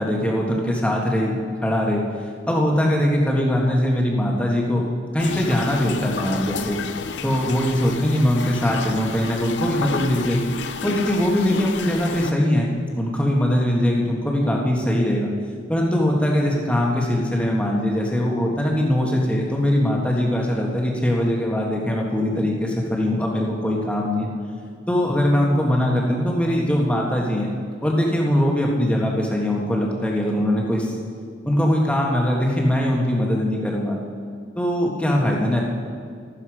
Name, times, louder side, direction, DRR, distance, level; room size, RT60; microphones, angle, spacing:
voice 1, 0.0-1.4 1.6-2.0 2.5-4.8 5.1-6.8 7.2-10.5 10.8-15.3 15.7-24.3 24.9-27.5 27.8-30.9 31.4-34.0 34.5-35.6, left 1 dB, 5° left, -2 dB, 1.6 m, -21 dB
sound 1, 5.2-12.3, left 5 dB, 70° left, 0.6 m, -31 dB
13.0 x 12.5 x 4.9 m, 2.1 s
head